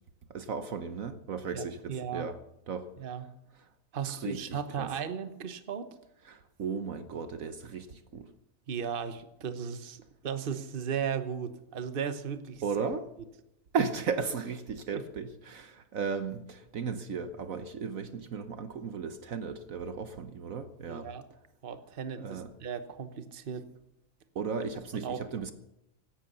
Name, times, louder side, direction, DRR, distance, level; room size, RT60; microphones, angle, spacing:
voice 1, 0.3-2.4 2.7-2.9 4.2-4.9 6.3-8.3 12.6-13.1 13.7-21.1 22.2-22.5 24.3-25.5, right 5 dB, 60° right, 10 dB, 1.3 m, -35 dB
voice 2, 1.5-2.3 3.0-3.3 3.9-5.9 8.7-12.6 14.9-15.0 20.9-21.2 21.6-23.6 24.9-25.2, right 7 dB, 40° right, 11 dB, 1.2 m, -36 dB
16.5 x 12.0 x 6.9 m, 0.85 s
omnidirectional pair, 1.6 m